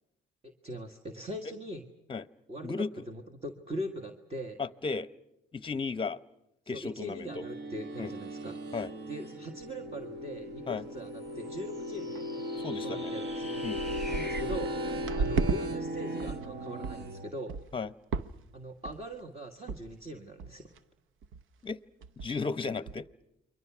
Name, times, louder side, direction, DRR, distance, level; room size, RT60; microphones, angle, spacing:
voice 1, 0.4-1.9 2.5-4.6 6.6-8.6 9.1-12.2 12.8-13.6 14.1-17.7 18.5-20.7, equal, 30° right, 1.7 m, -41 dB
voice 2, 2.6-3.0 4.6-5.1 5.5-6.2 6.7-7.4 8.0-8.1 8.7-8.9 10.7-10.8 12.6-13.1 13.6-13.8 17.7-17.9 21.6-21.8 22.2-23.1, left 4 dB, 25° left, 0.8 m, -34 dB
sound 1, 7.3-17.3, equal, 55° right, 1.5 m, -37 dB
sound 2, 9.6-9.7 10.2-10.3 10.5-11.0 11.3-11.6 12.2-12.3 12.9-13.0 13.3-15.6 16.0-16.5 16.8-17.1 17.5-17.8 18.1-18.5 18.8-19.2 19.7-19.8 20.1-20.2 20.4-20.8 21.2-21.4 21.7-21.8 22.0-22.4 22.9-23.0, right 5 dB, 80° right, 0.8 m, -35 dB
sound 3, 11.2-14.4, left 1 dB, ahead, 1.2 m, -46 dB
29.0 x 23.0 x 6.1 m
cardioid pair, 90°, 20 cm